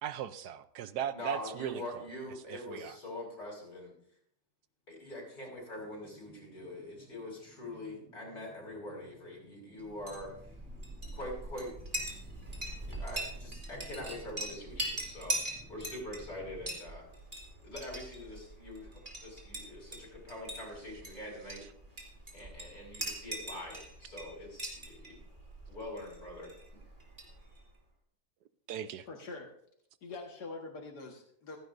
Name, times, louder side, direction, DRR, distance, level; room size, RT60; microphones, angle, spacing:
voice 1, 0.0-2.0 2.5-3.0 28.7-29.1, right 9 dB, 85° right, 13 dB, 1.3 m, -38 dB
voice 2, 1.1-3.9 4.9-10.3 11.1-11.7 12.9-15.4 15.7-17.0 17.6-21.6 22.3-25.2 25.7-26.5, left 1 dB, 70° left, -2 dB, 6.0 m, -44 dB
sound 1, 5.7-16.8, right 2 dB, 5° right, 1.2 m, -58 dB
Chink clink, 9.9-27.7, right 1 dB, 30° right, 3.0 m, -42 dB
voice 3, 29.1-29.5 30.0-31.6, left 3 dB, 90° left, 1 dB, 2.3 m, -44 dB
16.0 x 14.5 x 2.7 m, 0.68 s
omnidirectional pair, 1.7 m